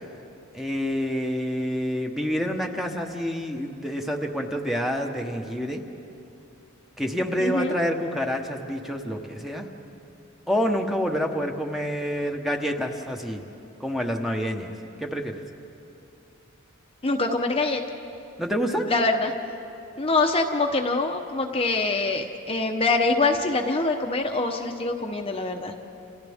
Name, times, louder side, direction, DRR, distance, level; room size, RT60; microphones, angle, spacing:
voice 1, 0.5-5.8 7.0-9.7 10.5-13.4 13.8-14.7 15.0-15.4 18.4-18.9, equal, ahead, 2 dB, 1.1 m, -27 dB
voice 2, 7.4-7.7 17.0-17.8 18.9-19.3 20.0-25.7, left 3 dB, 25° left, 3 dB, 0.9 m, -24 dB
29.0 x 28.5 x 3.6 m, 2.8 s
head